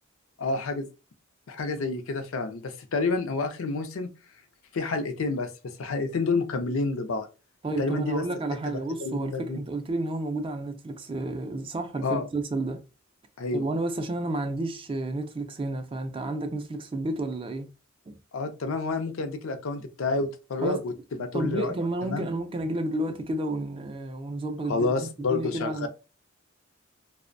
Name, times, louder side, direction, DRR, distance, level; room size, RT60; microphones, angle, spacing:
voice 1, 0.4-0.9 1.5-4.1 4.7-7.3 7.8-8.2 8.7-9.6 12.0-12.2 13.4-13.6 18.3-20.9 21.2-21.7 22.0-22.3 24.7-25.9, left 3 dB, 75° left, 0.4 m, -29 dB
voice 2, 7.6-12.8 13.5-17.7 18.1-18.2 20.6-20.8 21.3-25.9, right 2 dB, 25° right, 0.3 m, -31 dB
2.4 x 2.1 x 2.5 m
head